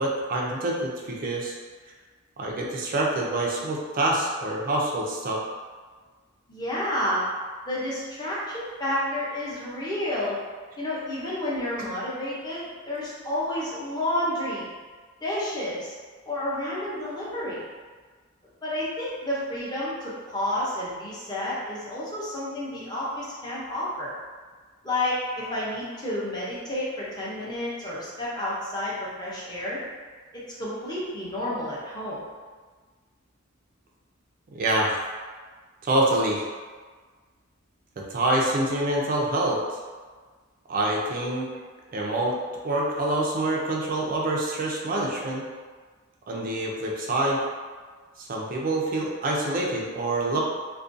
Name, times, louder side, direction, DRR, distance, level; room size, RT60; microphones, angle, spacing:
voice 1, 0.0-1.5 2.4-5.4 34.5-35.0 35.8-36.5 38.0-39.6 40.7-41.5 41.9-42.3 42.6-45.4 46.3-47.4 48.2-50.4, right 1 dB, 40° right, -2 dB, 0.4 m, -26 dB
voice 2, 6.5-7.2 7.7-10.4 10.8-14.7 15.2-15.9 16.2-17.6 18.6-24.1 24.8-29.8 30.3-32.2, left 1 dB, 20° left, -7 dB, 0.6 m, -30 dB
2.4 x 2.2 x 2.5 m, 1.5 s
head